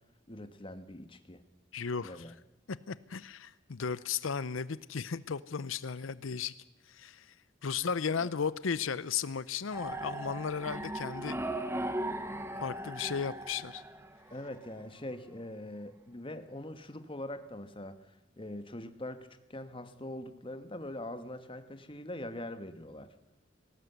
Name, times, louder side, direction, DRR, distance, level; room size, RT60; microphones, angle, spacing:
voice 1, 0.3-1.4 2.0-2.3 8.2-8.3 14.3-23.1, left 1 dB, 25° left, 10 dB, 1.4 m, -43 dB
voice 2, 1.7-2.2 2.9-6.5 6.9-7.3 7.6-11.4 12.6-13.8, left 6 dB, 85° left, 17 dB, 0.6 m, -35 dB
sound 1, 9.7-14.7, right 1 dB, 15° right, 1.2 m, -38 dB
19.5 x 17.5 x 8.1 m, 0.98 s
head